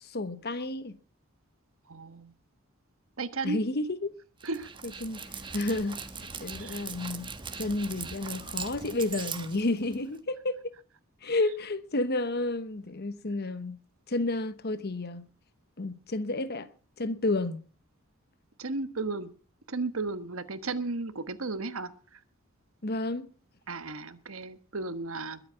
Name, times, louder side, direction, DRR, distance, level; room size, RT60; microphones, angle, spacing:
voice 1, 0.0-1.0 3.4-4.1 5.0-5.2 5.5-6.0 6.4-7.3 7.6-10.6 11.2-13.8 14.1-15.2 15.8-16.7 17.0-17.6 22.8-23.3, left 2 dB, 50° left, 1.1 m, -31 dB
voice 2, 1.9-2.3 3.2-3.6 4.4-4.7 6.6-6.8 18.6-19.3 19.7-21.9 23.7-25.4, right 3 dB, 70° right, 1.4 m, -34 dB
Dog, 4.4-10.2, right 5 dB, 25° right, 1.3 m, -40 dB
21.5 x 8.0 x 5.7 m
head